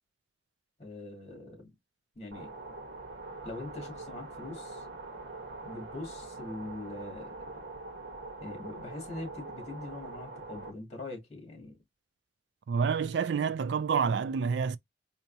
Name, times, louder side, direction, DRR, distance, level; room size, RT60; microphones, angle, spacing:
voice 1, 0.8-1.7 2.2-2.5 3.4-4.9 5.6-7.6 8.4-11.8, left 2 dB, 35° left, 2.4 m, -42 dB
sound 1, 2.3-10.7, right 3 dB, 85° right, 1.2 m, -43 dB
voice 2, 12.7-14.8, right 6 dB, 70° right, 0.4 m, -28 dB
4.5 x 2.8 x 2.7 m
head